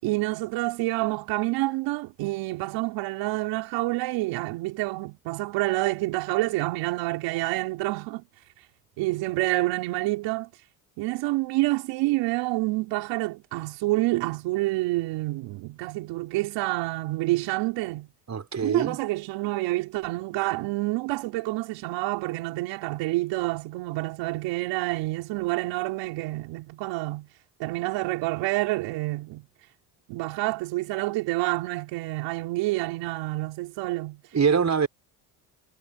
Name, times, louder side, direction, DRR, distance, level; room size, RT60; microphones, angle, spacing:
voice 1, 0.0-8.3 9.0-10.5 11.0-18.1 18.6-27.3 27.6-29.4 30.1-34.2, right 20 dB, 80° right, 5.1 m, -28 dB
voice 2, 18.3-19.0 34.3-34.9, right 6 dB, 40° right, 5.2 m, -23 dB
supercardioid pair, 65°, 43 cm